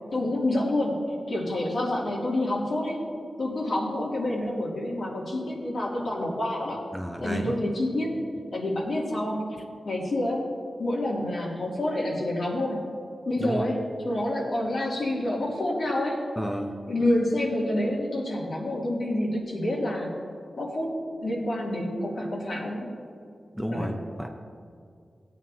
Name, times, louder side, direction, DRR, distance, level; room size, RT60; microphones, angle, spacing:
voice 1, 0.1-3.0 3.4-6.8 7.2-8.2 8.5-9.5 9.8-10.5 10.8-12.8 13.2-13.8 14.0-16.2 16.9-20.1 20.6-22.9 23.7-23.9, left 1 dB, 65° left, -4 dB, 2.6 m, -28 dB
voice 2, 6.9-7.6 13.4-13.7 16.4-16.7 23.5-24.3, equal, ahead, 2 dB, 0.8 m, -31 dB
18.5 x 9.3 x 2.8 m, 2.2 s
wide cardioid pair, 110°, 0 cm